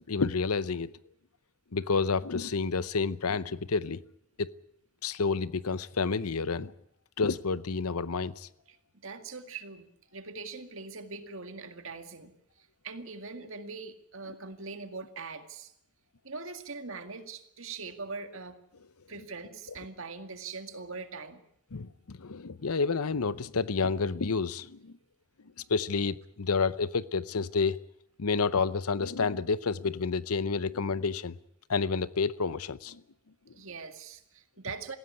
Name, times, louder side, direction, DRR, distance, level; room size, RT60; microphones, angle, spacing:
voice 1, 0.1-0.9 1.7-4.0 4.4-4.5 5.0-6.7 7.2-8.5 21.7-24.9 25.7-27.8 28.2-31.4 31.7-33.0, left 4 dB, 85° left, 17 dB, 0.8 m, -29 dB
voice 2, 8.7-15.7 16.2-18.6 19.1-21.4 33.6-35.0, right 4 dB, 65° right, 8 dB, 2.0 m, -42 dB
19.5 x 16.0 x 9.7 m, 0.77 s
head